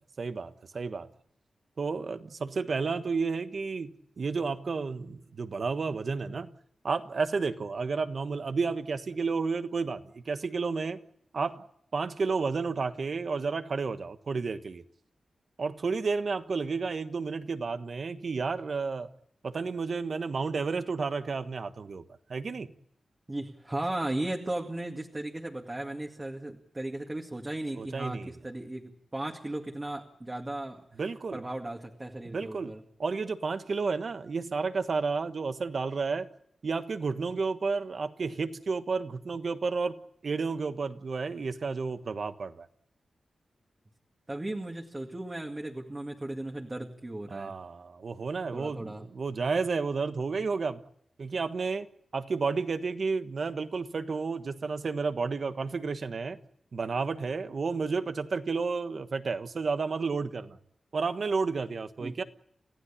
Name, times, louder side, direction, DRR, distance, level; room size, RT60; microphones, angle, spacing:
voice 1, 0.2-1.1 1.8-6.5 6.8-11.0 11.3-11.6 11.9-14.8 15.6-19.1 19.4-22.0 22.3-22.7 27.7-28.4 31.0-31.4 32.2-36.3 36.6-42.7 47.3-50.8 51.2-51.9 52.1-56.4 56.7-60.6 60.9-62.2, right 4 dB, 60° right, 10 dB, 1.3 m, -31 dB
voice 2, 23.3-30.8 31.3-32.8 44.3-47.5 48.5-49.1 62.0-62.2, right 1 dB, 20° right, 1 dB, 2.1 m, -36 dB
29.0 x 15.5 x 8.6 m, 0.73 s
cardioid pair, 80°, 0 cm